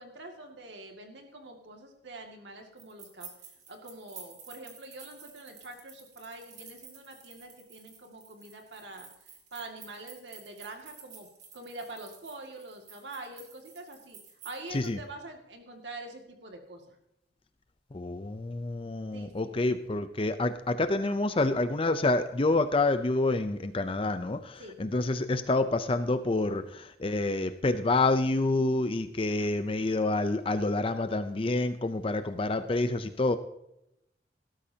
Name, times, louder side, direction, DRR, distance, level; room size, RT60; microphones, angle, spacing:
voice 1, 0.0-3.3 3.7-11.3 11.5-14.2 14.4-17.0 19.1-20.0 24.6-24.8 29.3-29.5, right 2 dB, 80° right, 3 dB, 2.2 m, -45 dB
sound 1, 2.8-14.9, right 6 dB, 40° right, 2.8 m, -52 dB
voice 2, 17.9-33.4, left 2 dB, 30° left, 10 dB, 0.6 m, -28 dB
18.0 x 13.0 x 2.8 m, 0.83 s
head